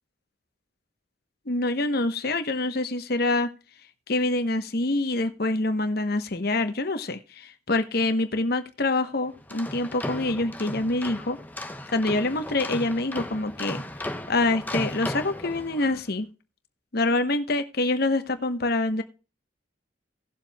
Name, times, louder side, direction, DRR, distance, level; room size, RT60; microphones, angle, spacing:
voice 1, 1.5-3.5 4.1-11.4 11.9-13.8 14.3-16.3 16.9-19.0, left 2 dB, 55° left, 9 dB, 1.1 m, -26 dB
sound 1, 9.3-16.0, left 1 dB, 10° left, 0.9 m, -36 dB
18.0 x 7.4 x 2.3 m, 0.32 s
head